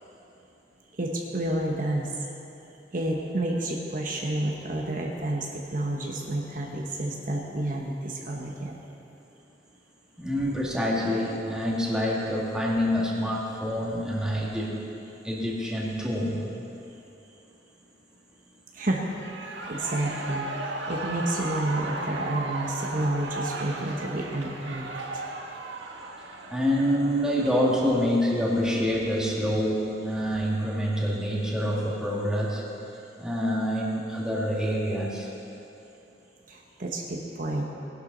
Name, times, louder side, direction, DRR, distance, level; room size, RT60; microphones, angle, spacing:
voice 1, 0.9-2.3 2.9-8.7 18.7-19.1 19.4-24.9 25.1-25.2 36.5-37.6, right 1 dB, 50° right, 0 dB, 1.1 m, -30 dB
voice 2, 10.2-14.8 15.2-16.4 26.5-32.6 33.2-35.3, equal, 5° right, -4 dB, 1.9 m, -26 dB
Shout / Cheering, 18.9-27.8, right 2 dB, 85° right, 1.3 m, -36 dB
19.5 x 11.5 x 4.0 m, 2.9 s
head